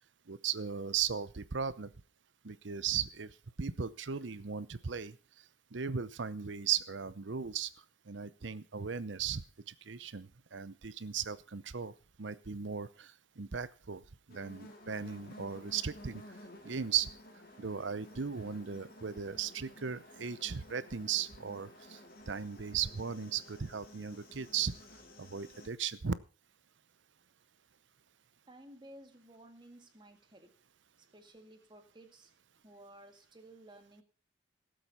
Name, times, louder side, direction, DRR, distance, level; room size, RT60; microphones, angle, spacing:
voice 1, 0.3-1.9 2.4-3.3 3.6-5.1 5.7-7.7 8.1-11.9 12.2-14.0 14.3-16.2 16.6-17.1 17.6-22.0 22.3-24.7 25.2-26.1, right 7 dB, 75° right, 16 dB, 0.8 m, -37 dB
sound 1, 14.3-25.7, left 1 dB, 50° left, 2.4 m, -54 dB
voice 2, 28.5-30.6 31.1-32.3 32.6-34.0, right 1 dB, 25° right, 6 dB, 2.0 m, -55 dB
17.5 x 7.8 x 5.6 m, 0.36 s
head